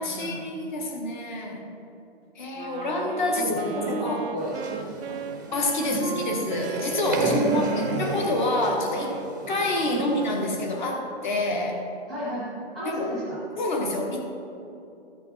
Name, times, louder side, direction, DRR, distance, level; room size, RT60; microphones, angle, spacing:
voice 1, 0.0-1.6 2.3-4.2 5.5-9.2 9.5-11.8 12.8-13.1 13.6-14.2, left 2 dB, 45° left, 1 dB, 1.5 m, -27 dB
Wind instrument woodwind instrument, 2.5-10.8, right 8 dB, 65° right, 0.5 m, -37 dB
voice 2, 3.3-5.2 5.8-6.1 7.2-8.1 9.8-10.0 12.1-13.4, right 1 dB, ahead, -8 dB, 0.8 m, -32 dB
sound 1, 4.4-10.5, right 3 dB, 20° right, 0.5 m, -33 dB
13.5 x 5.5 x 4.1 m, 2.7 s
hypercardioid pair, 175°, 31 cm